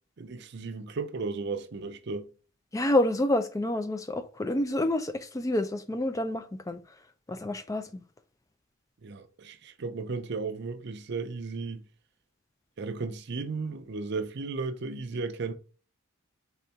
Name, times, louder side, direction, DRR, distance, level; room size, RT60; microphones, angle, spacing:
voice 1, 0.2-2.3 9.0-11.8 12.8-15.5, right 4 dB, 55° right, 0.5 m, -35 dB
voice 2, 2.7-6.8 7.3-8.0, left 1 dB, 15° left, 0.4 m, -28 dB
4.1 x 3.8 x 3.3 m
head